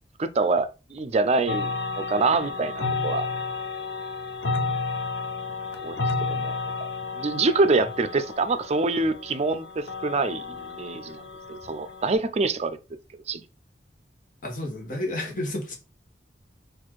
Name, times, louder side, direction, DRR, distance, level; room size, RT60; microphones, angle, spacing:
voice 1, 0.2-3.3 5.8-6.6 7.2-11.2 11.5-12.8 13.3-13.4, right 3 dB, 40° right, 0.4 m, -25 dB
sound 1, 1.5-12.1, left 3 dB, 85° left, 0.7 m, -32 dB
voice 2, 14.4-15.7, left 1 dB, 50° left, 1.3 m, -31 dB
4.3 x 2.5 x 4.5 m
head